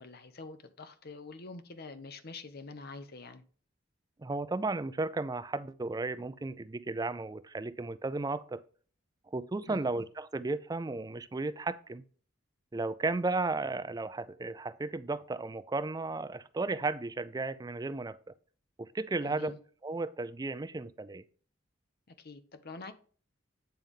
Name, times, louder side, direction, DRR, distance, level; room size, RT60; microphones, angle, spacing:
voice 1, 0.0-3.4 9.7-9.9 19.2-19.6 22.1-22.9, left 3 dB, 55° left, 0.8 m, -46 dB
voice 2, 4.2-8.6 9.3-12.0 12.7-18.3 18.8-19.6 19.8-21.2, right 3 dB, 20° right, 0.4 m, -34 dB
9.2 x 3.4 x 5.3 m
head